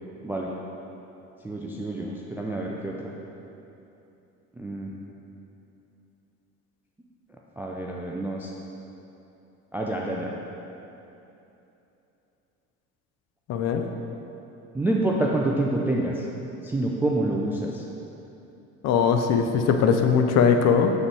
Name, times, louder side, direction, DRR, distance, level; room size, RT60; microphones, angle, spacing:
voice 1, 1.4-3.0 4.6-4.9 7.6-8.5 9.7-10.3 14.7-16.2 16.6-17.8, right 2 dB, 5° right, -2 dB, 0.3 m, -27 dB
voice 2, 13.5-13.9 18.8-20.9, left 6 dB, 40° left, 5 dB, 0.6 m, -20 dB
7.1 x 6.2 x 3.3 m, 2.9 s
figure-of-eight pair, 60°, 43 cm